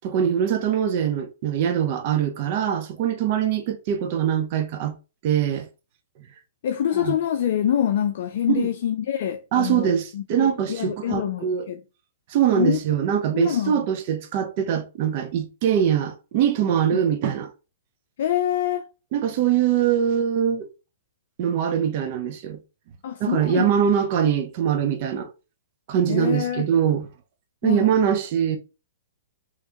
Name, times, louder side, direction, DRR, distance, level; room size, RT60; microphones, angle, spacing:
voice 1, 0.0-5.0 5.2-5.7 6.9-7.2 8.5-8.7 9.5-11.6 12.3-17.5 19.1-20.7 21.4-22.6 23.2-25.3 25.9-27.1 27.6-28.6, right 9 dB, 45° right, 0.7 m, -23 dB
voice 2, 6.6-11.8 12.5-12.8 13.3-13.7 16.9-17.0 18.2-18.9 23.0-23.7 26.1-26.7 27.6-27.9, left 10 dB, 60° left, 0.4 m, -25 dB
3.5 x 3.1 x 2.9 m
hypercardioid pair, 130°, 0 cm